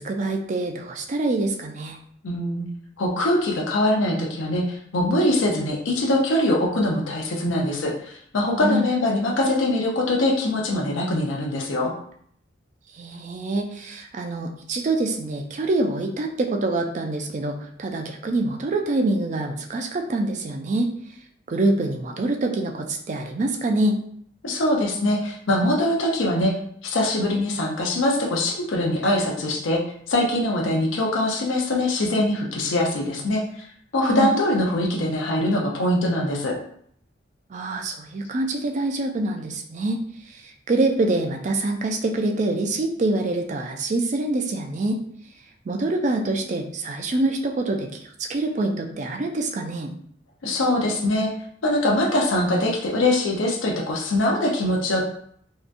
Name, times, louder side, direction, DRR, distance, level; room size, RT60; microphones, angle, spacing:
voice 1, 0.0-2.0 8.6-8.8 12.9-20.9 21.5-24.0 34.1-34.3 37.5-45.0 45.7-49.9, right 2 dB, 40° right, 3 dB, 0.3 m, -25 dB
voice 2, 2.2-2.6 3.0-11.9 24.4-26.5 26.8-29.8 30.1-33.4 33.9-36.5 50.4-51.3 51.6-55.0, left 1 dB, 80° left, -1 dB, 0.6 m, -23 dB
2.7 x 2.2 x 2.5 m, 0.64 s
head